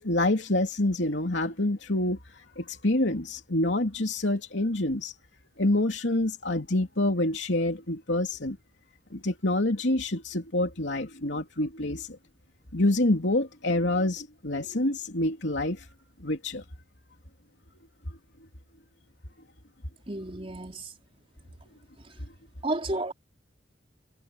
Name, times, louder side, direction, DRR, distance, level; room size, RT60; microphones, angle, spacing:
voice 1, 0.0-2.2 2.6-5.1 5.6-8.6 9.1-12.2 12.7-15.8 16.2-16.6, left 1 dB, 75° left, 3.1 m, -27 dB
voice 2, 20.1-20.9 22.0-22.2 22.6-23.1, right 2 dB, 30° right, 4.5 m, -32 dB
head